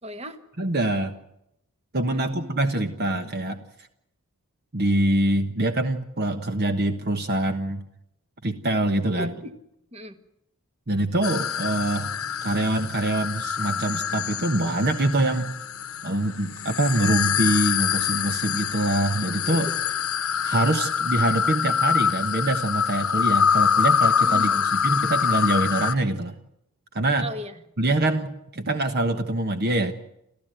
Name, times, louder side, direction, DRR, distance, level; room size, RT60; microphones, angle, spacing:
voice 1, 0.0-0.4 2.1-2.6 9.1-9.5 9.9-10.2 24.2-24.7 27.2-27.6, equal, 30° right, 9 dB, 1.6 m, -37 dB
voice 2, 0.6-1.1 1.9-3.6 4.7-7.8 8.4-9.3 10.9-15.5 16.0-19.7 20.4-26.3 26.9-27.3 27.8-29.9, right 1 dB, 50° right, 8 dB, 1.3 m, -24 dB
sound 1, 11.2-25.9, left 7 dB, 70° left, 1.0 m, -25 dB
29.5 x 14.0 x 9.1 m, 0.80 s
head